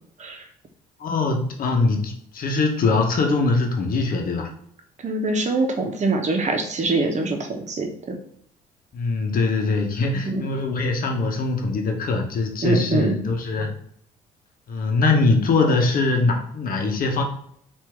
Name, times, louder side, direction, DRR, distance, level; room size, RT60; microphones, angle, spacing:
voice 1, 1.0-4.5 8.9-13.7 14.7-17.2, left 3 dB, 50° left, 3 dB, 0.9 m, -22 dB
voice 2, 5.0-8.2 10.3-10.4 12.6-13.2, right 3 dB, 40° right, 4 dB, 1.0 m, -24 dB
4.5 x 2.7 x 3.5 m, 0.67 s
hypercardioid pair, 55°, 18 cm